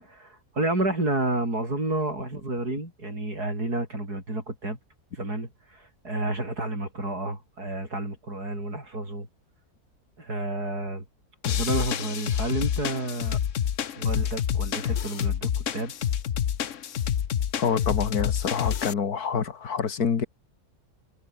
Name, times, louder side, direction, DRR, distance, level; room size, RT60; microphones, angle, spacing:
voice 1, 0.0-4.8 5.2-9.3 10.2-11.0 11.5-13.4 14.0-15.9, right 2 dB, 85° right, 8.7 m, -30 dB
sound 1, 11.4-18.9, left 9 dB, 55° left, 1.2 m, -28 dB
voice 2, 17.6-20.3, left 6 dB, 75° left, 2.2 m, -27 dB
omnidirectional pair, 1.6 m